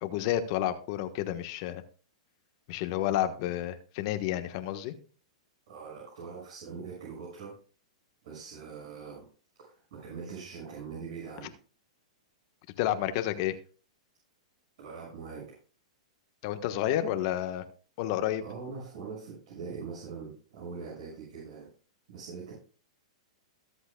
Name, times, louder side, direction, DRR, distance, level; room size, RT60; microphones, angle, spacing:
voice 1, 0.0-1.8 2.7-4.9 12.8-13.5 16.4-17.7 18.0-18.4, left 12 dB, 50° left, 9 dB, 1.3 m, -30 dB
voice 2, 5.7-7.5 8.2-9.3 9.6-11.6 14.8-15.4 18.4-21.7 22.1-22.5, right 5 dB, 60° right, -4 dB, 6.5 m, -42 dB
22.5 x 7.9 x 2.3 m, 0.38 s
hypercardioid pair, 125°, 4 cm